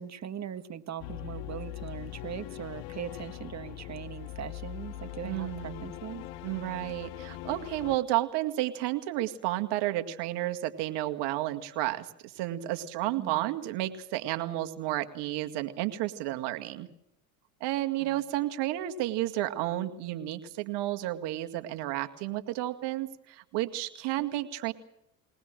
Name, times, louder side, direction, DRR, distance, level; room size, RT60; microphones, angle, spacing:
voice 1, 0.0-6.3 13.2-13.5 18.1-18.2, right 8 dB, 40° right, 11 dB, 1.6 m, -40 dB
sound 1, 1.0-8.0, left 13 dB, 65° left, 1.5 m, -41 dB
voice 2, 5.2-5.9 6.4-12.1 12.4-16.9 17.6-24.7, right 15 dB, 65° right, 8 dB, 2.1 m, -31 dB
22.0 x 19.5 x 7.6 m, 0.80 s
hypercardioid pair, 80°, 44 cm